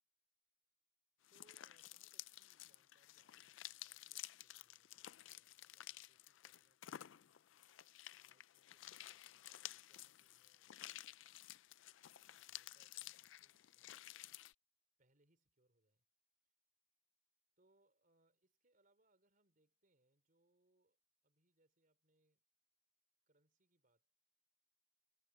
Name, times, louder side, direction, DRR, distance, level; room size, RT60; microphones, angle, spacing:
sound 1, 1.2-14.5, left 14 dB, 80° left, 0.4 m, -54 dB
voice 1, 1.3-7.4 8.2-11.4 12.3-14.1 15.0-16.1 16.4-16.5 17.6-22.4 23.3-24.1, right 2 dB, 45° right, 3.9 m, -80 dB
head